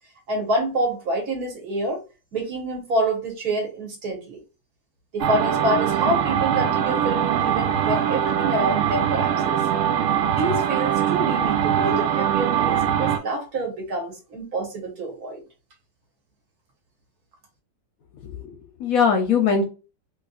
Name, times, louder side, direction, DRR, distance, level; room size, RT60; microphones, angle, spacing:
voice 1, 0.3-2.0 2.3-4.4 5.1-9.6 10.3-15.4, right 1 dB, 60° right, 1.7 m, -27 dB
sound 1, 5.2-13.2, right 9 dB, 85° right, 0.6 m, -22 dB
voice 2, 18.2-19.6, left 6 dB, 65° left, 1.0 m, -21 dB
3.2 x 3.1 x 2.3 m
omnidirectional pair, 1.9 m